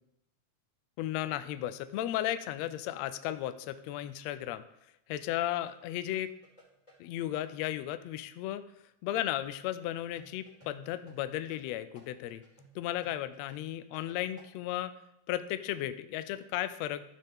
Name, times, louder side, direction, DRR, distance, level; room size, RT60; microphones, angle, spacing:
voice 1, 1.0-4.6 5.1-6.3 7.0-8.6 9.0-12.4 12.7-14.9 15.3-17.0, left 13 dB, 85° left, 11 dB, 1.5 m, -35 dB
sound 1, 5.7-7.7 10.2-14.5, right 1 dB, 10° left, 3.9 m, -58 dB
15.0 x 6.7 x 3.6 m, 0.83 s
omnidirectional pair, 3.7 m